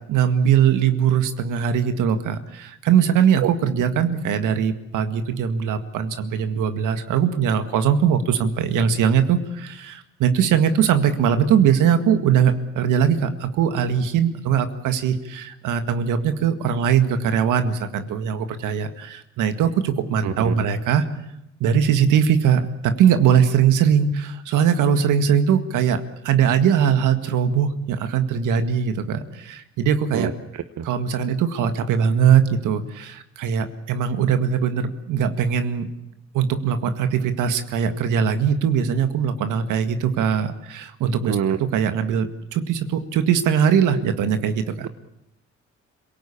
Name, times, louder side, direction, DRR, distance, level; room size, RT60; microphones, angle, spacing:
voice 1, 0.0-21.0 21.6-30.3 30.8-35.9 36.3-41.4 41.7-44.9, right 8 dB, 85° right, 8 dB, 1.9 m, -21 dB
voice 2, 20.2-20.5 30.1-30.9 41.3-41.6, right 9 dB, 65° right, 10 dB, 1.1 m, -25 dB
27.0 x 18.0 x 8.7 m, 0.85 s
cardioid pair, 90°, 30 cm